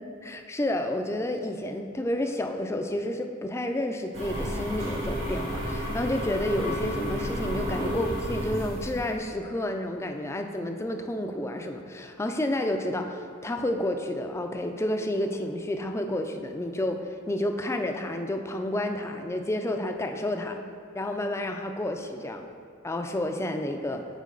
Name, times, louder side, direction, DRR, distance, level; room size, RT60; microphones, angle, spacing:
voice 1, 0.0-20.6 20.9-22.5 22.8-24.0, left 1 dB, 15° left, 5 dB, 0.4 m, -30 dB
sound 1, 4.1-9.1, equal, 70° right, 1.5 m, -31 dB
8.3 x 4.5 x 3.8 m, 2.3 s
head